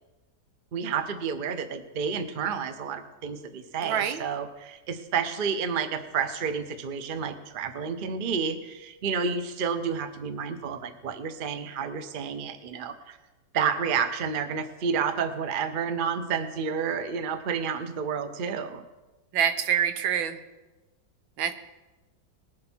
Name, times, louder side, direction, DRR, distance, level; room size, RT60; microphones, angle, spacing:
voice 1, 0.7-13.2 13.5-18.8, right 6 dB, 50° right, 9 dB, 0.6 m, -30 dB
voice 2, 3.8-4.2 19.3-20.4 21.4-21.5, right 9 dB, 90° right, 8 dB, 1.7 m, -26 dB
20.0 x 7.7 x 4.5 m, 1.1 s
omnidirectional pair, 2.1 m